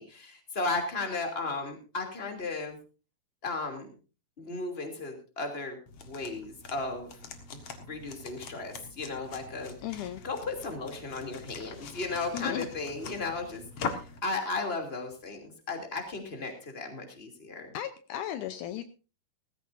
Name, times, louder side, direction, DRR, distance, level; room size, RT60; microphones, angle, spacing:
voice 1, 0.0-2.8 3.4-3.9 4.4-7.1 7.5-9.7 10.2-17.8, left 3 dB, 20° left, 3 dB, 2.7 m, -35 dB
sound 1, 5.9-14.2, left 5 dB, 50° left, 2.3 m, -42 dB
voice 2, 9.8-10.2 12.3-12.7 17.7-18.8, left 11 dB, 75° left, 10 dB, 2.2 m, -35 dB
18.5 x 15.0 x 2.6 m, 0.33 s
omnidirectional pair, 3.9 m